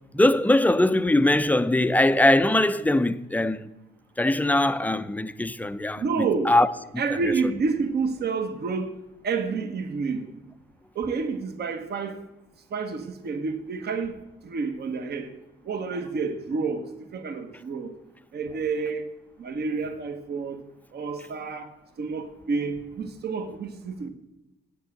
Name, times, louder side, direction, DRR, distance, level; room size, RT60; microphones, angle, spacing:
voice 1, 0.1-3.7 4.2-6.7, left 1 dB, 10° left, 0.5 m, -21 dB
voice 2, 6.0-6.5 7.0-8.9 9.2-10.3 10.9-12.2 12.7-14.2 14.4-15.3 15.6-16.8 17.1-17.9 18.3-19.0 19.4-20.6 20.9-21.7 22.0-24.1, right 4 dB, 55° right, 1.2 m, -29 dB
8.4 x 8.2 x 6.6 m
cardioid pair, 90°, 20 cm